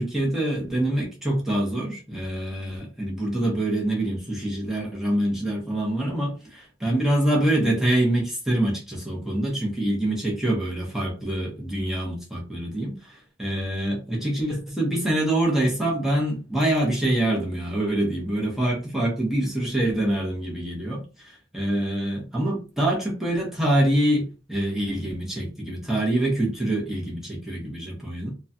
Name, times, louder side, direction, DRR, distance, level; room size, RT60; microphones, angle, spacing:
voice 1, 0.0-28.3, right 1 dB, ahead, -3 dB, 0.9 m, -25 dB
3.0 x 2.3 x 2.6 m, 0.33 s
head